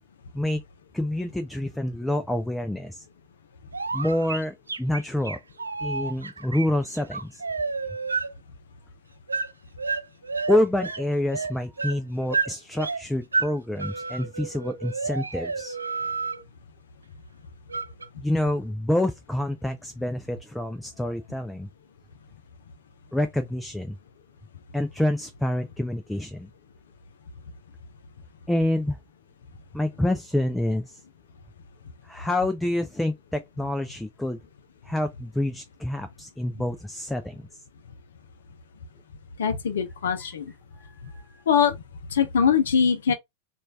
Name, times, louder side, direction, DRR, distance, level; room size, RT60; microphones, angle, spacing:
voice 1, 0.9-3.0 3.9-5.4 5.8-7.4 10.5-15.8 18.2-21.7 23.1-24.0 24.7-26.5 28.5-29.0 29.7-31.0 32.1-34.4 34.8-37.6 40.8-41.0, left 1 dB, 5° left, 0.4 m, -27 dB
sound 1, 3.7-8.3 9.3-9.5 9.8-11.0 11.3-13.0 13.3-13.5 13.8-16.4 17.7-18.1, right 4 dB, 75° right, 0.7 m, -30 dB
voice 2, 39.4-40.5 41.5-41.8 42.1-43.1, left 7 dB, 65° left, 0.5 m, -22 dB
3.1 x 2.4 x 3.4 m
figure-of-eight pair, 90°, 0 cm